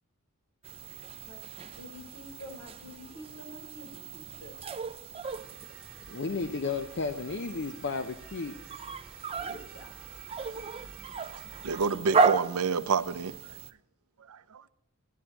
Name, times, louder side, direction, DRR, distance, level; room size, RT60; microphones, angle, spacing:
sound 1, 0.6-13.7, right 4 dB, 25° right, 0.5 m, -34 dB
voice 1, 1.2-4.6 9.4-10.0, left 1 dB, 75° left, 4.1 m, -48 dB
sound 2, 5.2-11.9, right 3 dB, 5° right, 1.8 m, -52 dB
voice 2, 6.1-8.6, left 4 dB, 50° left, 0.6 m, -33 dB
voice 3, 11.6-13.5 14.2-14.6, right 5 dB, 80° right, 0.6 m, -29 dB
14.5 x 10.0 x 2.9 m
head